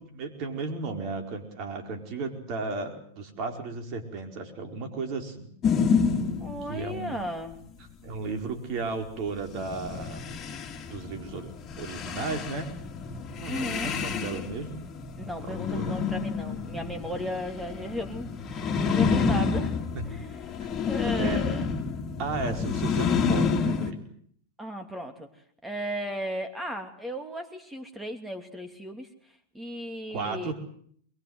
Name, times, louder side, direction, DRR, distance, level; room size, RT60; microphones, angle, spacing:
voice 1, 0.0-5.5 6.7-7.2 8.0-10.3 10.9-11.5 11.8-12.7 13.4-14.8 15.2-16.0 19.9-20.1 21.0-21.4 22.2-24.0 30.1-30.5, right 4 dB, 50° right, 5 dB, 4.8 m, -34 dB
sound 1, 5.6-6.9 9.5-23.9, left 5 dB, 30° left, 2.9 m, -29 dB
voice 2, 6.4-7.6 13.5-13.9 15.2-19.8 20.0-20.5 20.8-21.6 24.6-25.3 25.6-29.1 29.5-30.5, equal, 5° right, 6 dB, 2.7 m, -35 dB
22.5 x 22.5 x 8.0 m, 0.62 s
hypercardioid pair, 100°, 0 cm